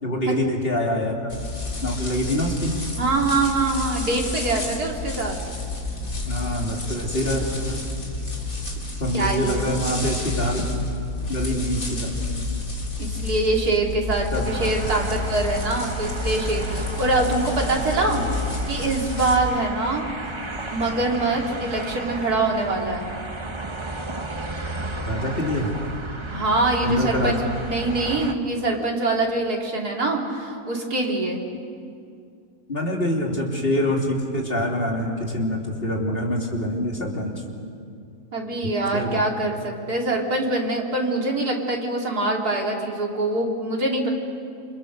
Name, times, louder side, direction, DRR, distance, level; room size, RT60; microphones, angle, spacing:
voice 1, 0.0-1.2 1.8-2.7 6.3-7.8 9.0-10.6 11.3-12.1 14.3-14.7 25.1-25.7 26.8-27.3 32.7-37.3 38.9-39.2, equal, 35° left, -1 dB, 3.5 m, -25 dB
sound 1, 1.3-19.3, left 2 dB, 60° left, 3.9 m, -30 dB
voice 2, 3.0-5.4 9.1-9.6 13.0-18.3 18.7-20.3 20.7-23.1 26.3-31.4 38.3-44.1, right 2 dB, 80° right, -1 dB, 3.9 m, -24 dB
sound 2, 14.4-28.3, right 2 dB, 20° right, 1.2 m, -33 dB
28.5 x 28.0 x 6.8 m, 2.4 s
omnidirectional pair, 1.6 m